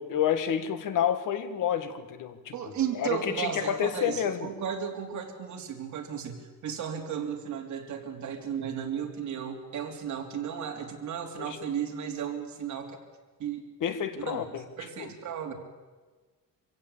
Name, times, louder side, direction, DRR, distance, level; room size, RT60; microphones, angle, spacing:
voice 1, 0.0-4.5 11.4-11.6 13.8-14.6 15.0-15.1, left 9 dB, 65° left, 11 dB, 1.7 m, -29 dB
voice 2, 2.5-13.0 13.4-13.6 14.2-14.4 14.8-15.5, right 8 dB, 55° right, 2 dB, 3.4 m, -34 dB
25.0 x 16.0 x 8.6 m, 1.3 s
cardioid pair, 155°, 34 cm